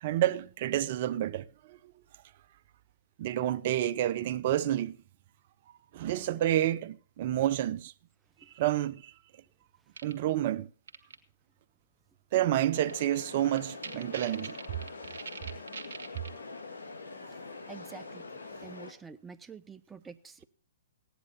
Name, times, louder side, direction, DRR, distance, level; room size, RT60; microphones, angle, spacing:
voice 1, 0.0-1.8 3.2-5.0 5.9-7.9 8.6-9.1 10.0-10.7 12.3-14.6, right 12 dB, 50° right, 0.7 m, -29 dB
sound 1, 10.0-10.1 10.9-11.2 12.9-13.0 13.3-13.4 13.6-16.3, right 5 dB, 75° right, 1.6 m, -42 dB
sound 2, 12.7-18.9, left 3 dB, 85° left, 2.3 m, -44 dB
voice 2, 17.7-18.2 18.6-20.4, right 5 dB, 10° right, 0.8 m, -47 dB
16.0 x 10.0 x 4.2 m
hypercardioid pair, 130°, 0 cm